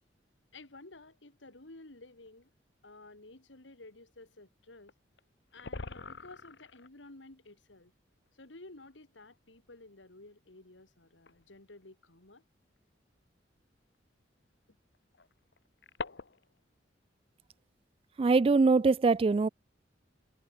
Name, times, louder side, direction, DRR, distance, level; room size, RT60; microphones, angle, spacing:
voice 1, 0.5-2.5 2.8-4.9 5.5-7.9 8.4-12.4, left 2 dB, 85° left, 2.4 m, -53 dB
sound 1, 2.3-2.4 4.9-5.0 5.2-5.3 5.5-6.9 8.3-8.4 9.2-9.3 11.3-11.5 12.8-12.9 14.9-16.6, left 3 dB, 65° left, 1.1 m, -43 dB
voice 2, 18.2-19.5, right 4 dB, 30° right, 0.3 m, -23 dB
head